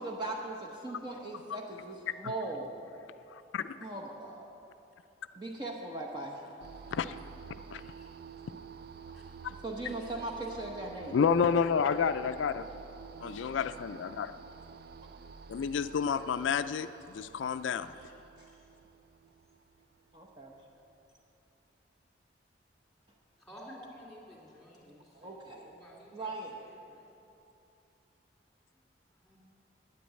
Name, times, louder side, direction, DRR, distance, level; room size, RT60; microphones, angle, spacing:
voice 1, 0.0-2.7 3.8-4.5 5.3-6.4 9.5-11.2 18.4-18.5 20.1-20.6 25.1-25.7 26.1-26.6, right 2 dB, 25° right, -1 dB, 0.8 m, -39 dB
voice 2, 3.3-3.8 6.9-7.2 7.7-7.8 11.1-12.6 13.2-14.3 15.5-17.9, left 6 dB, 85° left, 11 dB, 0.4 m, -30 dB
sound 1, 6.6-20.8, right 6 dB, 55° right, 0.3 m, -50 dB
voice 3, 7.7-8.2 9.1-9.2 9.8-10.1 10.4-10.5 12.6-12.8 17.3-17.5 17.9-18.1 18.5-18.6 23.4-27.2 29.1-29.4, equal, ahead, -4 dB, 2.6 m, -54 dB
9.5 x 8.4 x 8.8 m, 2.8 s
head